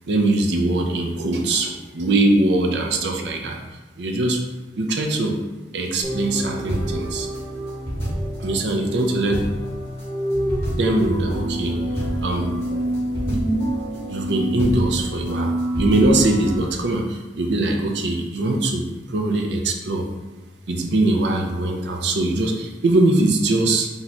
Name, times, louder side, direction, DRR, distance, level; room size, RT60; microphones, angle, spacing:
voice 1, 0.1-3.6 4.0-4.4 4.8-5.4 5.7-7.3 8.0-9.4 10.7-12.9 14.1-20.1 20.7-23.9, right 2 dB, 75° right, 2 dB, 0.6 m, -22 dB
sound 1, 6.0-16.6, right 1 dB, 15° left, 1.4 m, -26 dB
3.5 x 3.0 x 4.2 m, 1.2 s
head